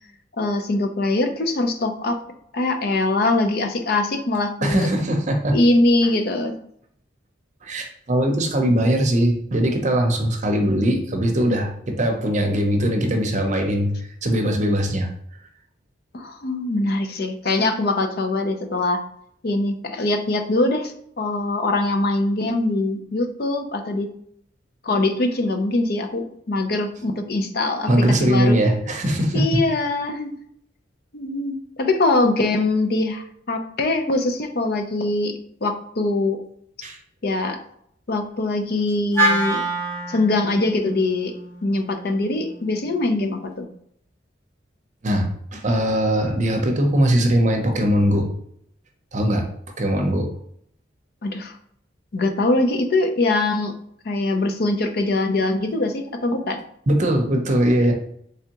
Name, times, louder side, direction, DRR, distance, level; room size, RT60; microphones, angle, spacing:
voice 1, 0.4-2.2 2.5-4.9 5.5-6.5 16.1-19.0 19.4-24.1 24.8-28.6 29.3-30.3 31.1-36.4 37.2-37.6 38.1-39.6 40.1-41.3 41.6-43.7 51.2-51.6 52.1-53.7 54.0-56.6, left 2 dB, 55° left, 6 dB, 0.5 m, -22 dB
voice 2, 4.6-5.6 7.6-15.1 27.9-29.4 36.8-37.0 45.0-48.3 49.1-49.5 49.8-50.3 56.9-57.9, equal, 40° right, 3 dB, 0.6 m, -20 dB
Wind instrument woodwind instrument, 39.1-43.4, right 1 dB, 15° left, 1.1 m, -27 dB
3.5 x 3.4 x 2.9 m, 0.69 s
head